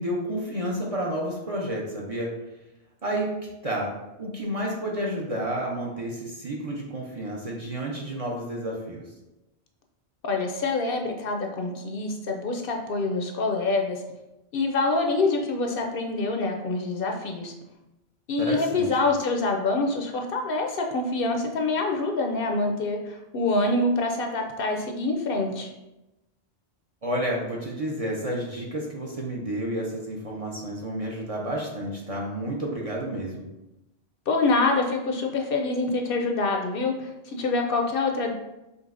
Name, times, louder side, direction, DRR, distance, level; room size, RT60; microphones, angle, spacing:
voice 1, 0.0-2.3 3.0-3.9 4.2-9.0 18.4-18.9 27.0-33.4, right 1 dB, 40° right, -2 dB, 0.6 m, -30 dB
voice 2, 10.2-14.0 14.5-17.5 18.3-25.7 34.3-38.3, left 3 dB, 65° left, 3 dB, 0.7 m, -26 dB
5.3 x 3.0 x 2.5 m, 0.96 s
omnidirectional pair, 1.1 m